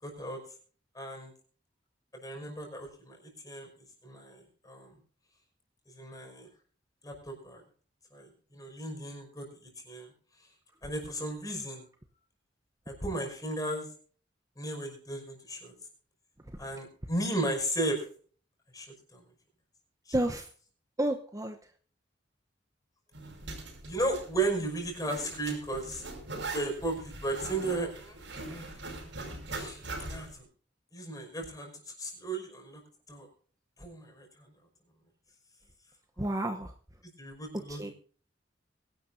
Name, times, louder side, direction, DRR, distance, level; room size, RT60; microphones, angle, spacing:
voice 1, 0.0-0.4 0.9-1.3 2.1-3.2 3.4-3.7 4.0-4.9 5.9-6.5 7.0-7.6 8.1-10.1 10.8-11.8 12.9-13.9 14.6-15.7 16.6-18.0 18.7-18.9 19.1-19.2 20.1-20.2 23.9-26.0 26.5-28.2 28.5-29.1 29.5-30.5 30.9-31.7 32.0-32.8 33.1-33.3 33.8-34.5 37.0-37.9, right 2 dB, 20° left, 2 dB, 5.7 m, -35 dB
voice 2, 20.1-20.5 21.0-21.5 36.2-36.7 37.7-37.9, right 1 dB, 20° right, 5 dB, 0.9 m, -30 dB
Zipper (clothing), 23.1-30.4, right 2 dB, 80° right, 5.7 m, -41 dB
23.0 x 12.0 x 2.7 m, 0.43 s
head